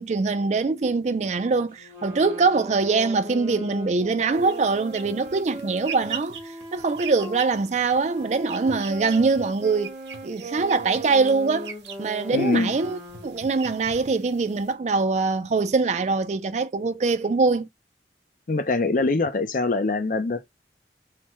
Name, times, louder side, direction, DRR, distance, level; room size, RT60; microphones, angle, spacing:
voice 1, 0.0-6.4 6.7-9.9 10.2-11.7 12.0-17.7, right 4 dB, 40° right, 0.4 m, -23 dB
sound 1, 1.7-7.4 8.1-13.5, right 1 dB, 15° right, 1.2 m, -39 dB
sound 2, 4.3-14.7, right 7 dB, 85° right, 0.8 m, -42 dB
voice 2, 12.3-12.7 18.5-20.4, left 3 dB, 50° left, 0.5 m, -23 dB
3.3 x 2.1 x 2.9 m
head